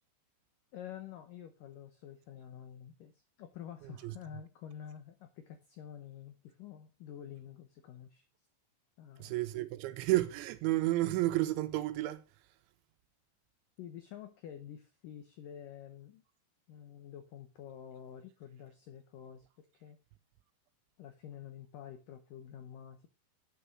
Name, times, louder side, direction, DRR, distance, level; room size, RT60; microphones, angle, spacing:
voice 1, 0.7-8.2 9.0-9.3 13.8-16.2 16.7-20.0 21.0-23.1, left 9 dB, 80° left, 1.9 m, -49 dB
voice 2, 3.8-4.1 9.2-12.2, right 16 dB, 90° right, 3.1 m, -31 dB
9.0 x 7.0 x 6.1 m
omnidirectional pair, 5.3 m